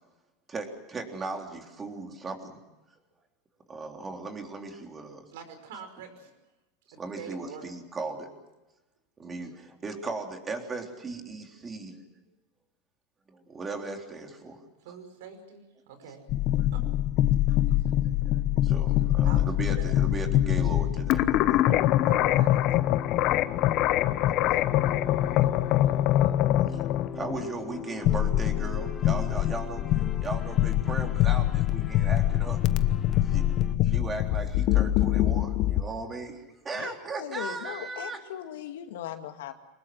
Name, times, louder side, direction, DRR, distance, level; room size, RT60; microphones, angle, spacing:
voice 1, 0.5-2.6 3.7-5.3 7.0-8.3 9.2-12.2 13.3-14.6 16.0-16.1 16.6-16.7 17.4-17.6 18.2-21.3 24.4-24.5 25.1-25.2 25.5-26.0 26.7-26.9 27.1-32.6 33.2-33.5 33.8-38.2, right 3 dB, 20° right, 3 dB, 3.6 m, -37 dB
voice 2, 5.3-6.3 7.2-7.6 14.8-16.2 16.7-16.9 17.5-17.8 19.2-19.5 19.8-19.9 22.0-22.7, right 7 dB, 75° right, 8 dB, 5.3 m, -44 dB
sound 1, 16.3-35.8, left 13 dB, 50° left, 1.0 m, -24 dB
sound 2, 22.6-33.8, left 6 dB, 30° left, 1.1 m, -42 dB
voice 3, 36.7-39.5, left 11 dB, 80° left, 6 dB, 2.0 m, -39 dB
24.5 x 20.5 x 7.6 m, 1.1 s
supercardioid pair, 125°, 0 cm